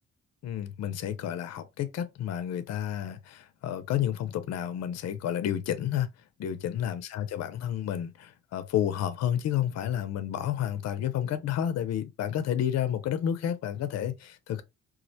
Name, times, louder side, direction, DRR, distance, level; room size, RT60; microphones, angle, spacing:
voice 1, 0.4-6.1 6.4-14.6, left 10 dB, 60° left, 0.5 m, -30 dB
2.3 x 2.1 x 2.7 m
cardioid pair, 90°, 30 cm